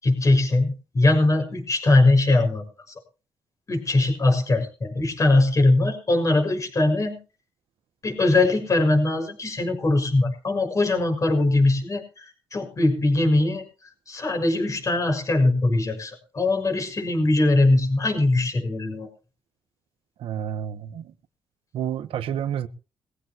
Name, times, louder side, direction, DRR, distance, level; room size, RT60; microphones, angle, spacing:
voice 1, 0.0-2.6 3.7-7.2 8.0-13.6 14.1-19.1, left 2 dB, 35° left, 6.3 m, -21 dB
voice 2, 20.2-21.1 21.7-22.7, right 9 dB, 80° right, 1.2 m, -29 dB
21.5 x 16.0 x 3.0 m
cardioid pair, 90°, 9 cm